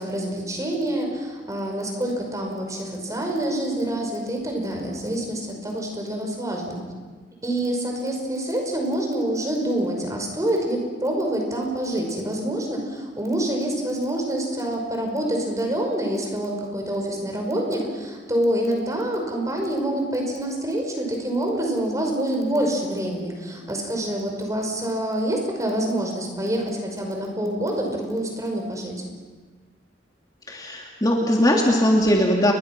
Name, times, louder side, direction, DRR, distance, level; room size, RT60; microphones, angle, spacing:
voice 1, 0.0-6.9 7.4-29.0, right 1 dB, 20° right, 2 dB, 5.5 m, -26 dB
voice 2, 30.5-32.5, equal, 20° left, -1 dB, 2.8 m, -20 dB
30.0 x 23.0 x 6.1 m, 1.4 s
head